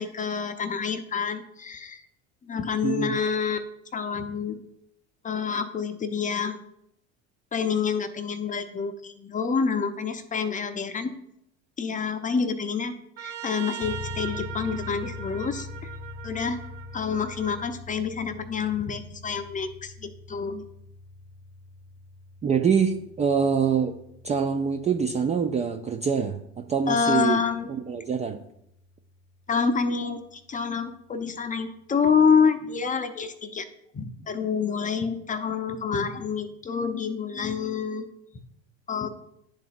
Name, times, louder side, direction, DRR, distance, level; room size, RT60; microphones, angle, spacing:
voice 1, 0.0-2.0 2.4-4.6 5.2-6.6 7.5-11.1 11.8-12.9 13.2-15.9 16.2-16.6 16.9-20.6 26.9-27.7 29.5-33.7 33.9-38.1 38.9-39.1, left 6 dB, 20° left, 9 dB, 0.6 m, -27 dB
voice 2, 2.8-3.2 22.4-24.0 24.2-27.4 27.7-28.4, right 6 dB, 20° right, 5 dB, 0.4 m, -25 dB
Trumpet, 13.2-17.7, right 11 dB, 90° right, 0.7 m, -40 dB
sound 1, 13.8-28.2, left 3 dB, 60° left, 0.8 m, -43 dB
10.5 x 3.9 x 2.5 m, 0.77 s
hypercardioid pair, 80°, 36 cm